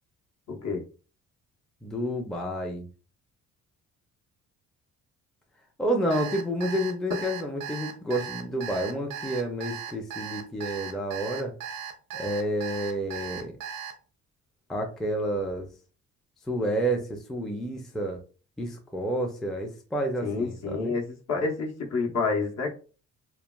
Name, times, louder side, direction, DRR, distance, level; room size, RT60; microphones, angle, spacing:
voice 1, 0.5-0.8 20.2-22.7, left 4 dB, 55° left, 2 dB, 0.8 m, -29 dB
voice 2, 1.8-2.9 5.8-11.5 12.1-13.5 14.7-15.7 16.5-18.2 18.6-20.9, right 1 dB, ahead, 2 dB, 0.4 m, -30 dB
Alarm, 6.1-13.9, right 8 dB, 90° right, 0.6 m, -37 dB
3.1 x 2.2 x 2.2 m, 0.36 s
cardioid pair, 110°, 32 cm